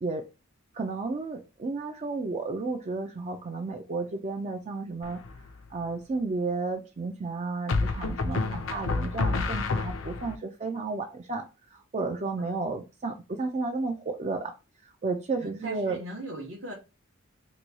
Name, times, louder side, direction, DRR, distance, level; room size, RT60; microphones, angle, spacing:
voice 1, 0.7-5.2 5.7-8.4 8.7-11.5 11.7-14.5 15.0-16.0, right 3 dB, 35° right, 0.4 m, -32 dB
sound 1, 5.0-5.5 7.7-10.4, left 3 dB, 70° left, 0.5 m, -29 dB
voice 2, 8.3-8.7 12.4-12.7 15.4-16.7, right 1 dB, 65° right, 1.0 m, -39 dB
3.0 x 2.2 x 4.0 m
head